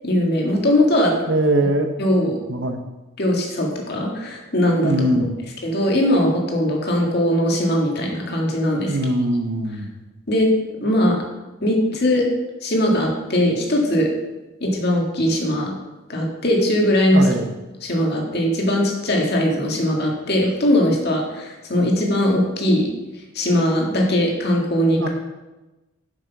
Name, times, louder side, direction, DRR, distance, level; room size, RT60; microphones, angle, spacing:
voice 1, 0.0-1.2 2.0-2.4 3.2-4.9 5.6-9.0 10.3-10.5 10.8-11.2 11.6-12.2 12.6-14.1 14.6-15.7 16.1-17.3 17.8-22.9 23.3-25.1, left 1 dB, 50° left, 0 dB, 1.9 m, -20 dB
voice 2, 1.3-1.9 2.5-2.8 4.8-5.3 8.9-9.9 17.1-17.5 25.0-25.1, right 1 dB, 60° right, 6 dB, 1.0 m, -21 dB
7.6 x 6.3 x 5.9 m, 1.1 s
head